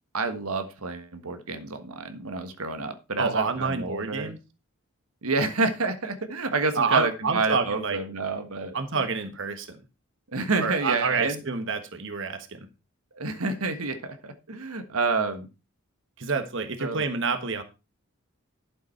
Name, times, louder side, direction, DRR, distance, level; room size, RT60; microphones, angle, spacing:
voice 1, 0.1-4.3 5.2-8.8 10.3-11.4 13.1-15.5 16.8-17.1, right 3 dB, 85° right, 8 dB, 1.5 m, -29 dB
voice 2, 3.2-4.4 6.7-8.0 8.7-9.8 10.6-12.7 16.2-17.6, right 4 dB, 55° right, 7 dB, 1.4 m, -28 dB
11.5 x 7.1 x 4.4 m, 0.29 s
head